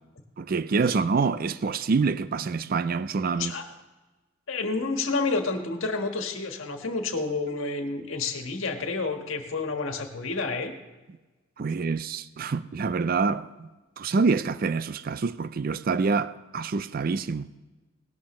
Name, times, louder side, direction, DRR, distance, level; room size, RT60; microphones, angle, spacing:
voice 1, 0.4-3.5 11.6-13.7 14.0-17.6, right 4 dB, 45° right, 0.4 m, -26 dB
voice 2, 4.5-10.7, left 3 dB, 75° left, 1.6 m, -29 dB
18.0 x 13.0 x 3.2 m
head